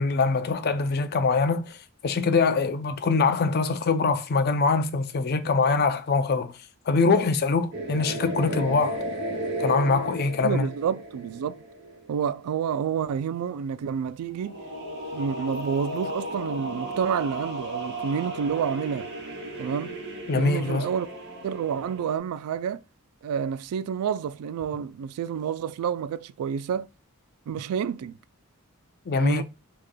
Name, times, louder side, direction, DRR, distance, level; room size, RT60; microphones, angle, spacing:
voice 1, 0.0-1.8 2.0-6.5 6.9-9.0 9.6-10.7 20.3-20.8 29.1-29.4, left 4 dB, 45° left, 0.4 m, -23 dB
sound 1, 7.7-12.3 14.4-22.2, right 1 dB, 50° right, 1.2 m, -35 dB
voice 2, 10.4-11.6 12.1-14.5 15.1-19.1 19.6-20.0 20.3-21.1 21.4-22.8 23.2-26.9 27.5-28.2 29.2-29.4, right 7 dB, 80° right, 0.3 m, -29 dB
4.8 x 3.0 x 2.2 m
head